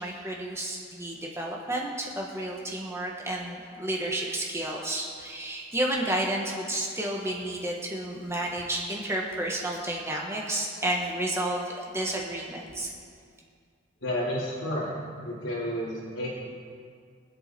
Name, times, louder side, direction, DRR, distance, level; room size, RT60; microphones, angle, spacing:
voice 1, 0.0-12.9, right 1 dB, 15° right, -1 dB, 1.4 m, -31 dB
voice 2, 14.0-14.9 15.2-16.3, equal, 80° left, -8 dB, 2.9 m, -31 dB
24.0 x 8.1 x 4.4 m, 2.2 s
head